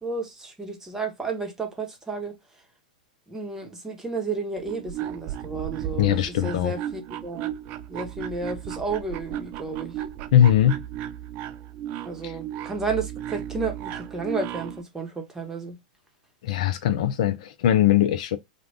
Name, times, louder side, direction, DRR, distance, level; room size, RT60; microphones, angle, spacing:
voice 1, 0.0-2.3 3.3-7.5 7.9-10.0 12.0-15.8, right 4 dB, 10° right, 0.9 m, -32 dB
sound 1, 4.6-14.8, right 11 dB, 40° right, 0.3 m, -35 dB
voice 2, 6.0-6.7 10.3-10.8 12.2-12.3 16.4-18.4, left 11 dB, 60° left, 0.4 m, -20 dB
2.4 x 2.2 x 3.3 m
hypercardioid pair, 105°, 4 cm